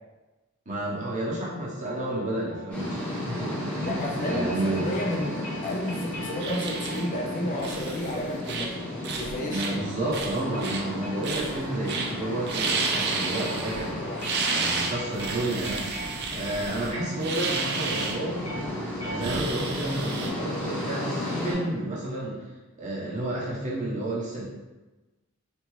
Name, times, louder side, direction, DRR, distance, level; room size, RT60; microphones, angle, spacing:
voice 1, 0.7-3.0 3.3-4.9 9.5-14.1 14.5-15.8 16.3-18.5 19.0-22.4 22.8-24.4, right 1 dB, 35° right, -6 dB, 0.8 m, -31 dB
sound 1, 1.8-19.7, right 1 dB, 75° left, 1.0 m, -43 dB
sound 2, 2.7-21.5, left 1 dB, 5° left, 0.8 m, -34 dB
voice 2, 3.8-8.7 9.1-9.7 13.9-14.6, left 1 dB, 35° left, -2 dB, 0.4 m, -32 dB
sound 3, 6.4-7.0 7.6-8.1 8.4-8.7 9.0-9.7 10.1-10.8 11.2-11.6 11.9-12.1 12.4-13.9 14.2-18.2 19.2-20.3, right 4 dB, 50° right, 0.4 m, -31 dB
2.6 x 2.5 x 3.0 m, 1.1 s
head